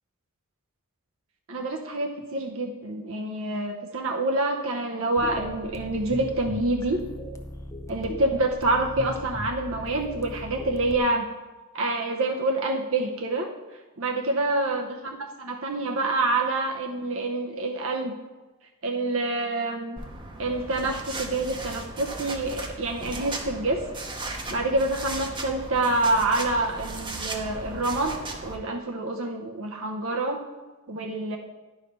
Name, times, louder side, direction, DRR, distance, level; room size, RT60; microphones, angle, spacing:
voice 1, 1.5-7.0 7.9-11.3 11.7-13.5 14.0-18.1 18.8-20.0 20.4-23.8 24.3-28.1 28.4-30.4 30.9-31.4, right 2 dB, 65° right, 1 dB, 0.8 m, -27 dB
sound 1, 5.2-11.0, left 1 dB, 15° left, 0.6 m, -38 dB
sound 2, 20.0-28.6, right 2 dB, 20° right, 0.9 m, -36 dB
10.5 x 4.8 x 5.5 m, 1.2 s
head